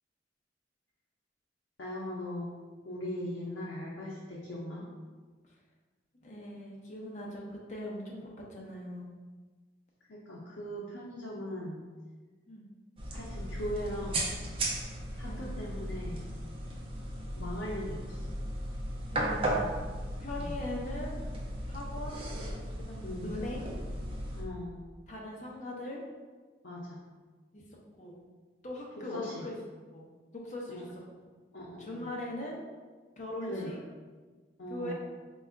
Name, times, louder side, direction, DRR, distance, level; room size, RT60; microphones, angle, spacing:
voice 1, 1.8-2.5 2.8-4.9 10.1-11.8 13.1-14.3 15.2-16.2 17.4-18.2 20.4-20.6 23.0-23.3 24.4-24.8 26.6-27.0 29.0-29.5 30.7-30.8 31.5-32.1 33.5-33.7 34.6-34.9, left 1 dB, 85° left, -5 dB, 0.6 m, -39 dB
voice 2, 6.2-9.1 12.5-12.7 15.2-15.6 19.1-19.6 20.2-21.2 21.7-22.3 22.8-23.7 25.1-26.0 27.5-27.6 28.0-28.2 28.6-29.6 29.9-30.1 30.3-30.9 31.8-32.6 33.2-33.8 34.7-34.9, left 1 dB, 40° left, -2 dB, 0.7 m, -40 dB
sound 1, 13.0-24.4, right 1 dB, 30° right, 0.5 m, -36 dB
4.1 x 2.3 x 3.5 m, 1.4 s
head